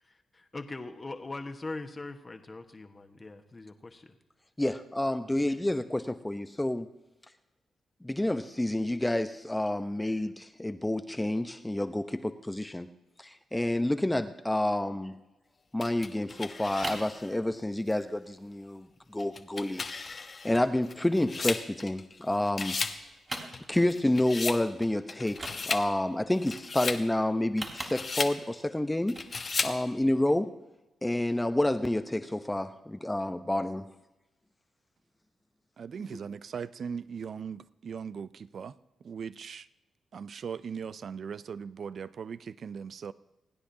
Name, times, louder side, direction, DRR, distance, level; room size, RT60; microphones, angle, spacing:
voice 1, 0.5-4.2, left 2 dB, 35° left, 5 dB, 1.3 m, -41 dB
voice 2, 4.6-6.9 8.0-12.9 13.2-15.1 15.7-18.9 19.1-19.8 20.4-22.8 23.7-29.2 29.6-30.5 31.0-33.9, left 1 dB, 15° left, 9 dB, 0.8 m, -29 dB
sound 1, 15.8-17.3 17.9-18.0 19.2-22.2 22.5-23.0 23.3-24.6 25.1-25.9 26.3-27.0 27.6-28.4 29.1-29.8, left 4 dB, 50° left, 1.0 m, -35 dB
sound 2, 16.3-17.2 17.5-17.9 18.2-18.3 18.5-18.7 19.1-19.5 20.0-20.2 20.5-21.7 22.1-22.9 23.2-24.0 24.4-24.5 24.8-25.0 25.2-26.0 27.3-28.4 29.0-29.3 29.7-29.8, right 2 dB, 35° right, 3.2 m, -42 dB
voice 3, 35.8-38.7 39.0-39.7 40.1-43.1, right 6 dB, 60° right, 17 dB, 0.4 m, -39 dB
29.0 x 10.0 x 2.8 m, 0.98 s
supercardioid pair, 45°, 0 cm